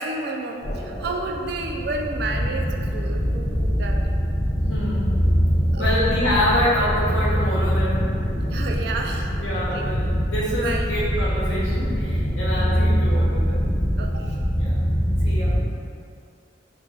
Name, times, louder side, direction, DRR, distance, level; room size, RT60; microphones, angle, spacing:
voice 1, 0.0-4.0 5.7-6.0 8.4-9.9 10.6-10.9 14.0-14.4, right 3 dB, 55° right, 2 dB, 0.3 m, -31 dB
sound 1, 0.6-15.6, equal, 25° left, 0.5 m, -23 dB
voice 2, 4.6-5.2 5.8-8.1 9.4-13.7 14.5-14.8 15.2-15.5, left 1 dB, 85° left, -7 dB, 1.0 m, -26 dB
3.2 x 2.2 x 3.6 m, 2.3 s
head